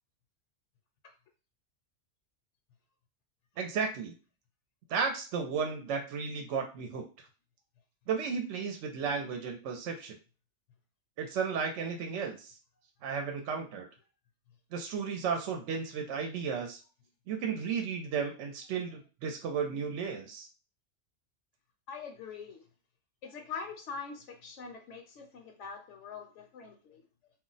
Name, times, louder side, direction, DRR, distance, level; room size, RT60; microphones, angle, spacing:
voice 1, 3.6-4.1 4.9-7.1 8.1-10.2 11.2-12.5 13.0-13.9 14.7-16.8 17.3-20.5, right 6 dB, 75° right, 3 dB, 0.9 m, -34 dB
voice 2, 21.9-22.7 23.2-27.3, left 5 dB, 75° left, 3 dB, 0.9 m, -44 dB
2.4 x 2.0 x 3.8 m, 0.34 s
omnidirectional pair, 1.3 m